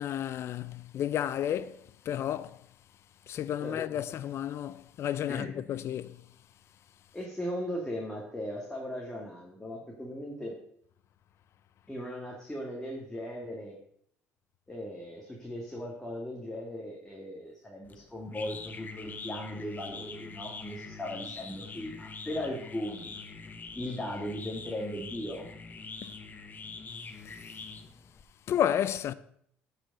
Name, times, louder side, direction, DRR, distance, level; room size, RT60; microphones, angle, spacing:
voice 1, 0.0-1.8 2.1-2.6 3.3-6.2 26.0-26.1 28.5-29.1, left 10 dB, 55° left, 0.5 m, -31 dB
voice 2, 5.3-5.6 7.1-10.5 11.9-13.8 14.7-23.2 23.7-25.5, equal, 10° left, 2.0 m, -38 dB
sound 1, 17.8-28.2, left 4 dB, 35° left, 1.0 m, -44 dB
8.7 x 5.0 x 6.5 m
supercardioid pair, 75°, 5 cm